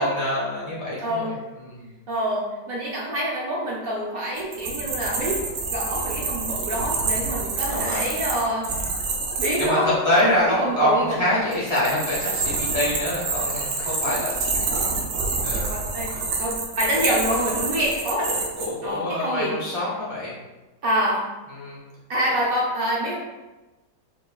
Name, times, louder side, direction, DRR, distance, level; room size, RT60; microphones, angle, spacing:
voice 1, 0.0-1.9 7.7-8.0 9.6-14.8 15.4-15.7 16.9-17.0 18.3-20.3 21.5-21.8, left 1 dB, 30° right, -8 dB, 0.5 m, -25 dB
voice 2, 1.0-1.3 2.1-5.4 5.7-8.9 9.4-11.2 15.7-16.1 16.4-18.3 18.8-19.6 20.8-21.3 22.1-23.2, equal, 65° right, -3 dB, 0.9 m, -26 dB
sound 1, 4.4-9.7 11.5-18.7, right 4 dB, 80° right, 1.4 m, -27 dB
5.1 x 2.9 x 2.3 m, 1.1 s
omnidirectional pair, 2.0 m